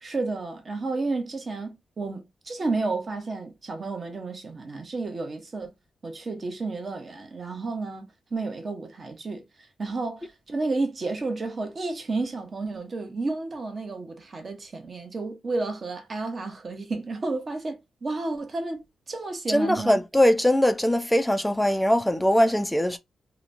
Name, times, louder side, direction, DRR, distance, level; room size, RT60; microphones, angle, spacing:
voice 1, 0.0-5.7 6.0-9.5 9.8-20.0, right 3 dB, 40° right, 0.8 m, -31 dB
voice 2, 19.5-23.0, equal, 5° left, 0.4 m, -21 dB
2.9 x 2.2 x 2.5 m
cardioid pair, 100°, 0 cm